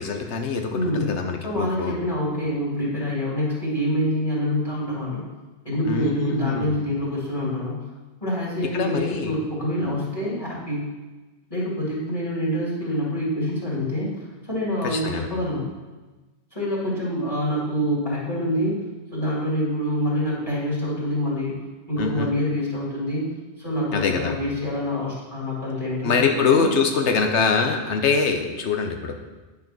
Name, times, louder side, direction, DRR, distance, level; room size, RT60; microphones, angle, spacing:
voice 1, 0.0-2.0 5.9-6.8 8.7-9.3 14.8-15.3 22.0-22.3 23.9-24.3 26.0-29.2, left 5 dB, 90° left, 4 dB, 1.2 m, -24 dB
voice 2, 0.7-5.2 5.6-7.8 8.2-10.9 11.5-15.7 16.5-18.8 19.1-21.6 21.9-23.3 23.6-26.7, left 1 dB, 30° left, -6 dB, 2.7 m, -26 dB
9.2 x 5.7 x 6.0 m, 1.2 s
omnidirectional pair, 1.1 m